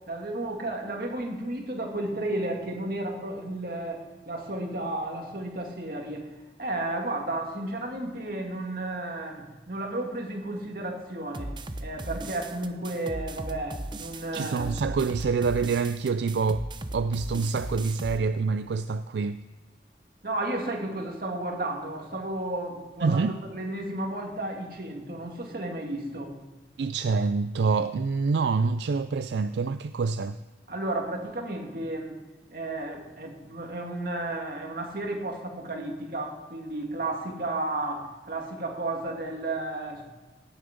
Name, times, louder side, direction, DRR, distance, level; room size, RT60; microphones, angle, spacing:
voice 1, 0.1-6.3 6.6-11.5 11.8-14.7 20.2-26.4 30.7-32.2 32.5-40.0, right 2 dB, 55° right, 2.2 m, -33 dB
sound 1, 11.3-18.2, right 1 dB, 25° right, 0.6 m, -37 dB
voice 2, 14.3-16.6 16.9-19.4 23.0-23.4 26.8-30.4, right 4 dB, 75° right, 0.4 m, -26 dB
17.0 x 7.2 x 5.2 m
head